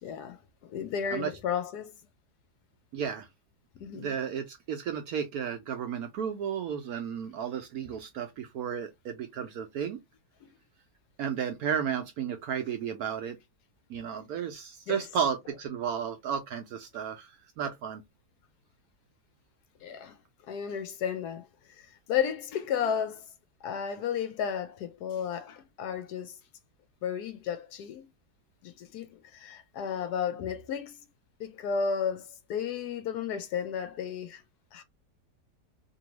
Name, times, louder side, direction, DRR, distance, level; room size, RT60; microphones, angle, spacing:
voice 1, 0.0-1.9 3.8-4.2 10.4-10.5 14.9-15.0 19.8-20.2 20.5-23.3 23.6-26.4 27.0-28.0 28.6-31.0 31.4-34.4 34.7-34.8, left 7 dB, 70° left, 1.0 m, -33 dB
voice 2, 2.9-3.3 3.9-10.0 11.2-13.4 13.9-18.0, right 8 dB, 70° right, 0.9 m, -33 dB
2.9 x 2.7 x 3.0 m
omnidirectional pair, 1.9 m